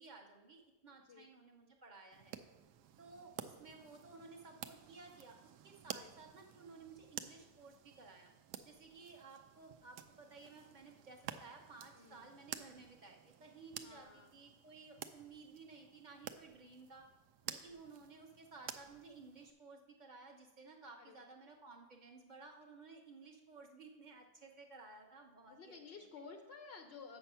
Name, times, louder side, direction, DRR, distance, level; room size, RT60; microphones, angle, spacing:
voice 1, 0.0-2.4 3.0-8.3 8.6-17.1 17.5-25.8, right 4 dB, 35° right, 2 dB, 0.9 m, -56 dB
sound 1, 2.1-19.5, right 10 dB, 80° right, 1.1 m, -52 dB
voice 2, 11.9-12.3 13.8-14.3 21.0-21.3 25.5-27.2, left 5 dB, 60° left, 4 dB, 0.6 m, -54 dB
7.8 x 7.0 x 5.6 m, 1.1 s
omnidirectional pair, 1.8 m